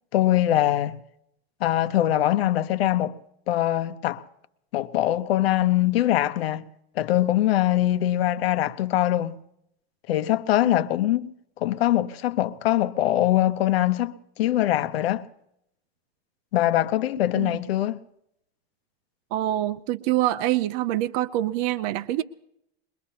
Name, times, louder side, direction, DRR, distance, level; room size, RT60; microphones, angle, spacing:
voice 1, 0.1-1.0 1.6-3.2 3.5-4.2 4.7-6.7 7.0-9.4 10.1-11.3 11.6-15.2 16.5-18.0, left 13 dB, 85° left, 0.9 m, -22 dB
voice 2, 19.3-22.2, right 14 dB, 45° right, 0.6 m, -25 dB
22.5 x 22.0 x 2.8 m
supercardioid pair, 150°, 30 cm